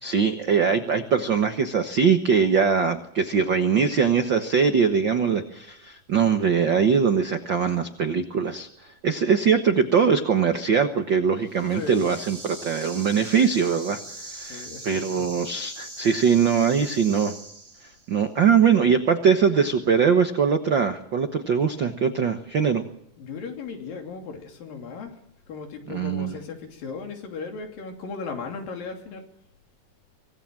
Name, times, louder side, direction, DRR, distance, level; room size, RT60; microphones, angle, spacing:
voice 1, 0.0-8.7 9.0-14.0 14.3-17.3 18.1-22.8 25.9-26.3, right 6 dB, 65° right, 7 dB, 1.1 m, -22 dB
sound 1, 11.4-18.1, right 2 dB, 10° right, 2.1 m, -41 dB
voice 2, 11.7-12.1 14.5-15.3 23.2-25.2 25.5-29.2, left 4 dB, 75° left, 4 dB, 4.6 m, -36 dB
25.0 x 18.0 x 7.6 m, 0.74 s
omnidirectional pair, 4.1 m